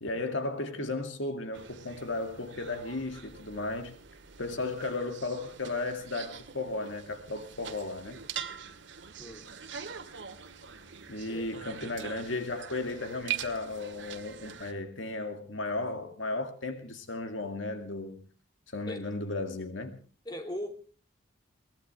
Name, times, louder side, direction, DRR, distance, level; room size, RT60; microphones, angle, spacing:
voice 1, 0.0-3.9 4.4-8.2 11.1-18.3 18.7-20.0, left 2 dB, 80° left, 2.2 m, -35 dB
sound 1, 1.5-14.7, right 8 dB, 70° right, 2.0 m, -43 dB
voice 2, 20.2-20.7, equal, 20° left, 2.9 m, -38 dB
22.5 x 19.5 x 3.3 m
head